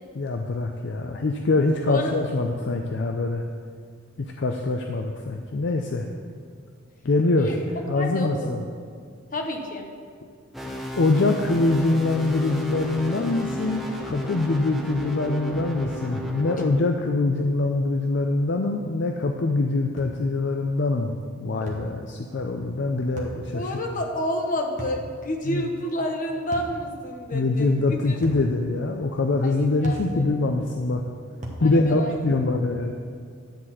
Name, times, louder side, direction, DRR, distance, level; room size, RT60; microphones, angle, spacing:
voice 1, 0.1-3.4 4.2-6.1 7.0-7.6 7.9-8.6 11.0-23.7 25.5-25.7 27.3-31.0 31.6-32.9, left 2 dB, 55° left, 3 dB, 0.4 m, -24 dB
voice 2, 7.9-8.5 9.3-9.9 23.5-28.2 29.4-30.3 31.6-32.2, left 1 dB, 40° left, 2 dB, 0.9 m, -29 dB
sound 1, 10.5-16.7, equal, ahead, 0.6 m, -33 dB
sound 2, 20.0-20.2 21.7-21.9 23.2-23.4 24.8-25.0 26.5-26.8 28.2-28.5 29.8-30.1 31.4-31.7, right 1 dB, 35° right, 1.1 m, -36 dB
10.0 x 4.1 x 7.4 m, 2.1 s
head